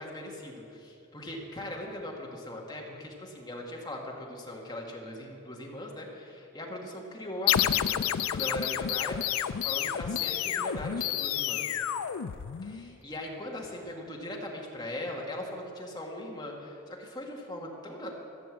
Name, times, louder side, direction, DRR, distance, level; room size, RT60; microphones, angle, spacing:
voice 1, 0.0-8.0 8.3-9.2 9.6-11.8 12.6-18.1, left 1 dB, 20° left, -2 dB, 1.7 m, -39 dB
sound 1, 7.5-12.9, left 10 dB, 80° left, 0.4 m, -30 dB
14.5 x 6.9 x 7.7 m, 2.8 s
head